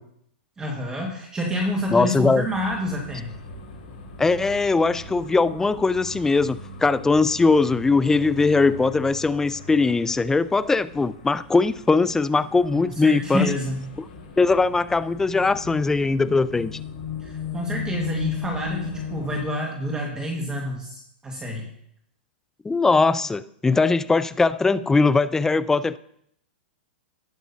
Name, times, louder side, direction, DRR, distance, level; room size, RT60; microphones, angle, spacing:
voice 1, 0.6-3.3 12.7-13.9 17.2-21.7, equal, 15° right, 0 dB, 1.6 m, -28 dB
sound 1, 1.5-19.5, left 6 dB, 60° left, 4.0 m, -38 dB
voice 2, 1.9-2.4 4.2-13.4 14.4-16.8 22.6-26.0, left 3 dB, 10° left, 16 dB, 0.3 m, -20 dB
18.0 x 6.0 x 2.7 m, 0.71 s
hypercardioid pair, 125°, 6 cm